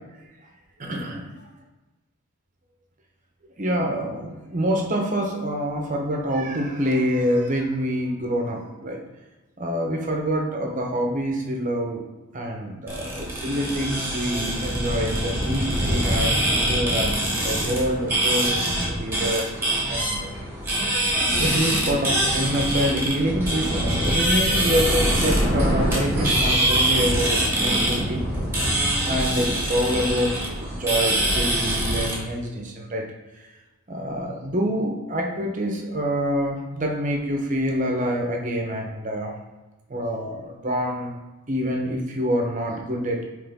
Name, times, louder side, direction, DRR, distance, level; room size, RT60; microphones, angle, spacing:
voice 1, 0.8-1.2 3.6-9.0 9.6-12.1 12.3-20.4 21.4-28.3 29.0-33.1 33.9-39.4 39.9-41.2 41.5-43.2, equal, 35° right, 1 dB, 0.8 m, -26 dB
sound 1, 12.9-32.2, right 1 dB, 10° right, 1.4 m, -24 dB
9.3 x 3.2 x 3.5 m, 1.1 s
head